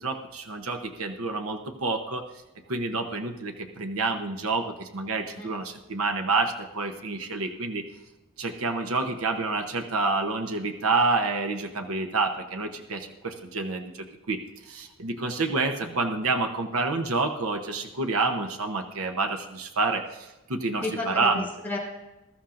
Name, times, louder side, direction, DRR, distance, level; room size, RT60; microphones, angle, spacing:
voice 1, 0.0-2.3 2.7-7.8 8.4-14.4 14.7-21.4, right 3 dB, 85° right, 4 dB, 0.9 m, -28 dB
voice 2, 20.8-21.8, left 2 dB, 10° left, -5 dB, 4.2 m, -33 dB
21.0 x 13.0 x 2.6 m, 1.1 s
head